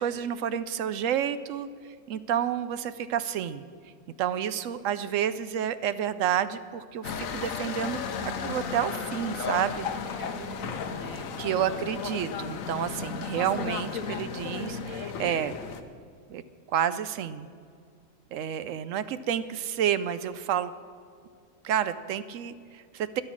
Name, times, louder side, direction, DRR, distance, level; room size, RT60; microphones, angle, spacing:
voice 1, 0.0-1.7 2.1-3.6 4.2-10.2 11.4-15.5 16.3-16.4 16.7-17.5 18.3-20.7 21.6-23.2, right 9 dB, 75° right, 13 dB, 0.9 m, -30 dB
sound 1, 7.0-15.8, left 6 dB, 85° left, 1.3 m, -34 dB
voice 2, 9.8-11.9, equal, 15° left, 4 dB, 1.1 m, -46 dB
12.0 x 10.5 x 6.2 m, 2.2 s
omnidirectional pair, 1.4 m